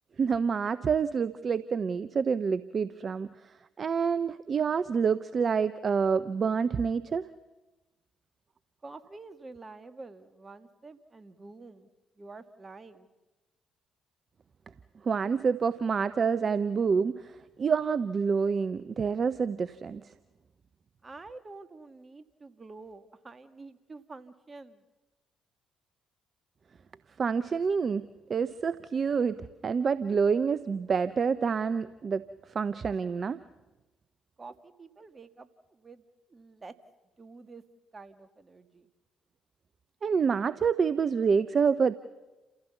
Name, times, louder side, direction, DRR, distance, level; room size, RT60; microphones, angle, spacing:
voice 1, 0.2-7.3 15.0-20.1 27.2-32.2 32.5-33.4 40.0-41.9, right 6 dB, 45° right, 15 dB, 0.7 m, -27 dB
voice 2, 8.8-11.9 12.2-13.1 21.0-24.8 34.4-36.8 37.2-37.6 37.9-38.9, right 3 dB, 30° right, 11 dB, 1.8 m, -48 dB
29.0 x 15.5 x 7.1 m, 1.1 s
hypercardioid pair, 50°, 0 cm